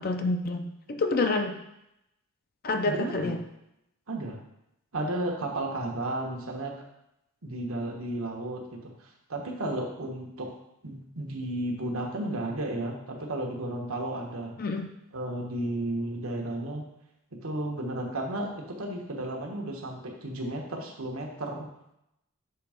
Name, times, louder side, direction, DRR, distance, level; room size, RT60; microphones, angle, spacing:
voice 1, 0.0-1.6 2.6-3.4 14.6-14.9, left 3 dB, 45° left, 5 dB, 0.5 m, -28 dB
voice 2, 2.8-3.3 4.1-4.4 4.9-6.7 7.4-10.5 10.8-14.6 15.1-16.8 17.3-21.7, right 1 dB, 80° right, 0 dB, 1.2 m, -33 dB
6.9 x 3.5 x 5.0 m, 0.83 s
head